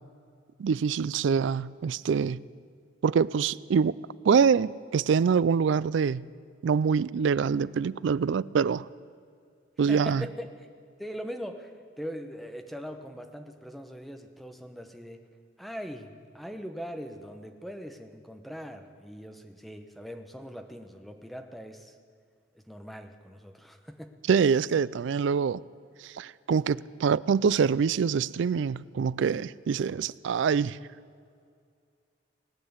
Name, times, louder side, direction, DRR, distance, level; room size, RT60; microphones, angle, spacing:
voice 1, 0.6-2.4 3.0-4.0 4.2-6.3 6.6-8.9 9.8-10.2 24.3-25.6 26.0-30.8, right 6 dB, 75° right, 20 dB, 0.3 m, -25 dB
voice 2, 9.9-10.7 11.0-15.3 15.6-22.0 22.5-24.2, equal, ahead, 5 dB, 0.9 m, -41 dB
18.5 x 9.5 x 8.0 m, 2.3 s
head